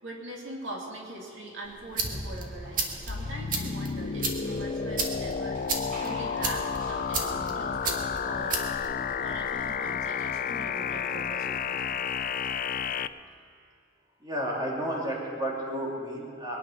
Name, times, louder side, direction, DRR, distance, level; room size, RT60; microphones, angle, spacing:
voice 1, 0.0-5.6 6.0-8.7 9.2-11.8, right 1 dB, 70° right, -1 dB, 2.4 m, -41 dB
sound 1, 1.6-9.7, right 3 dB, 45° right, 1.9 m, -35 dB
sound 2, 3.1-13.1, left 6 dB, 45° left, 0.4 m, -31 dB
voice 2, 14.2-16.6, right 1 dB, 20° right, -3 dB, 2.8 m, -32 dB
22.5 x 10.0 x 5.8 m, 2.7 s
head